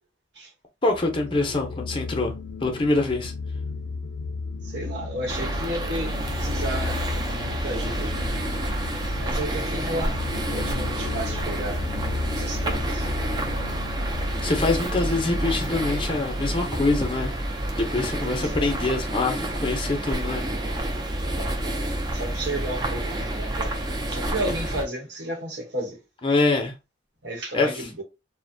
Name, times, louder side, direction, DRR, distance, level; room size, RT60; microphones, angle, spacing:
voice 1, 0.8-2.3 2.6-3.3 14.4-17.3 17.7-20.4 26.2-26.7 27.5-27.7, left 3 dB, 25° left, 0.5 m, -24 dB
sound 1, 0.9-17.1, left 4 dB, 75° left, 0.3 m, -35 dB
voice 2, 4.6-8.3 9.2-10.2 10.5-11.8 12.3-13.1 18.2-18.7 21.2-21.5 22.1-23.8 24.1-26.0 27.2-28.0, right 1 dB, 70° right, 1.0 m, -33 dB
sound 2, 5.3-24.8, right 1 dB, 20° right, 0.4 m, -29 dB
2.5 x 2.1 x 2.5 m
head